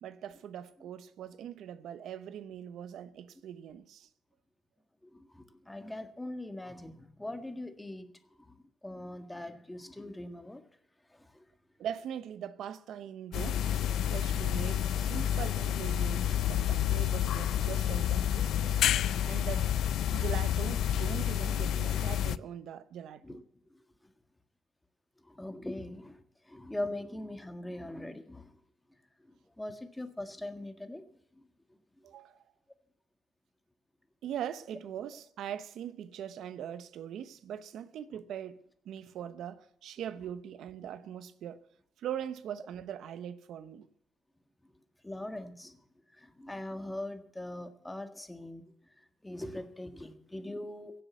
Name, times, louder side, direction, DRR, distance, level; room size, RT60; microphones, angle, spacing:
voice 1, 0.0-4.1 11.8-13.6 14.1-18.8 19.2-19.7 20.1-23.4 32.0-32.4 34.2-41.6 42.0-43.9, right 9 dB, 75° right, 0.8 m, -41 dB
voice 2, 5.0-8.1 8.8-10.6 11.2-11.5 23.2-23.4 25.2-26.2 26.5-28.5 29.6-31.0 45.0-45.8 46.1-48.6 49.2-51.0, left 1 dB, 10° left, 1.7 m, -41 dB
sound 1, 13.3-22.4, left 10 dB, 75° left, 0.5 m, -29 dB
16.5 x 7.8 x 8.2 m
cardioid pair, 90°, 0 cm